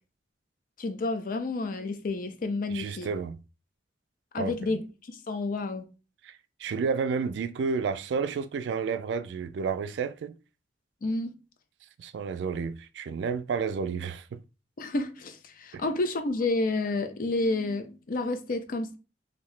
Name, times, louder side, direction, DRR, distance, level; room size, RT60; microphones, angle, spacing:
voice 1, 0.8-3.1 4.3-5.9 11.0-11.3 14.8-19.0, left 2 dB, 50° left, 0.5 m, -30 dB
voice 2, 2.7-3.4 4.4-4.8 6.2-10.3 12.0-14.4, right 5 dB, 75° right, 0.3 m, -31 dB
2.8 x 2.6 x 3.2 m
head